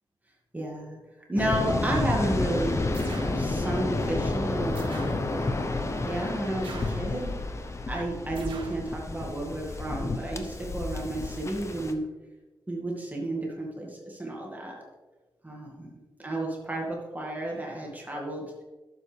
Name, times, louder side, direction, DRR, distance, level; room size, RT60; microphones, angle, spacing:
voice 1, 0.5-1.0 1.3-2.8 3.3-5.5 6.1-7.3 7.9-12.1 12.7-14.8 15.4-18.4, right 1 dB, 20° right, -2 dB, 2.1 m, -32 dB
Waves surf, 1.4-11.9, left 2 dB, 30° left, 0.9 m, -30 dB
sound 1, 2.9-3.5 4.8-5.3 6.6-7.1 8.4-8.9, right 3 dB, 70° right, 1.7 m, -40 dB
11.5 x 7.5 x 3.4 m, 1.2 s
cardioid pair, 90°, 9 cm